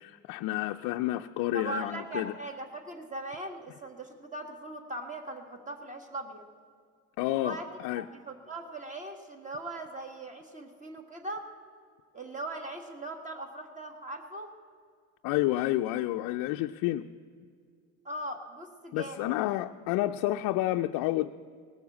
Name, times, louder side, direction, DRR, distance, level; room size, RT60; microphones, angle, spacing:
voice 1, 0.0-2.3 7.2-8.0 15.2-17.0 18.9-21.3, left 15 dB, 65° left, 5 dB, 0.5 m, -30 dB
voice 2, 1.5-6.4 7.3-7.7 8.0-11.5 12.1-14.5 18.0-19.3, right 2 dB, 20° right, 4 dB, 1.6 m, -40 dB
18.0 x 7.0 x 7.3 m, 2.1 s
supercardioid pair, 100°, 36 cm